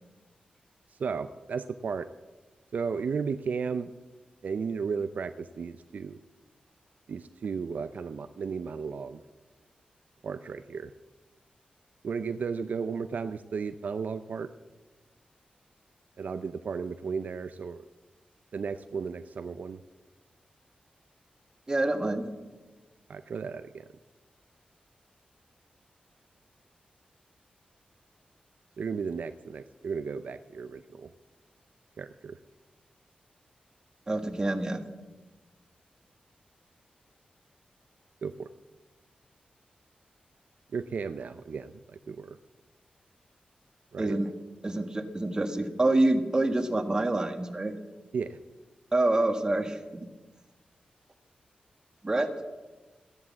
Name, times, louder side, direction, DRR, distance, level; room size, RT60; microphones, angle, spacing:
voice 1, 1.0-2.1 2.7-3.9 4.4-6.2 7.1-9.2 10.2-10.9 12.0-14.5 16.2-17.9 18.5-19.8 23.1-23.9 28.8-31.1 32.0-32.4 38.2-38.5 40.7-42.4 43.9-44.2 48.1-48.4, right 5 dB, 65° right, 10 dB, 0.5 m, -34 dB
voice 2, 21.7-22.3 34.1-34.8 44.0-44.3 44.6-47.7 48.9-50.1 52.0-52.3, right 2 dB, 25° right, 7 dB, 1.5 m, -27 dB
14.0 x 11.0 x 7.3 m, 1.2 s
wide cardioid pair, 105°, 3 cm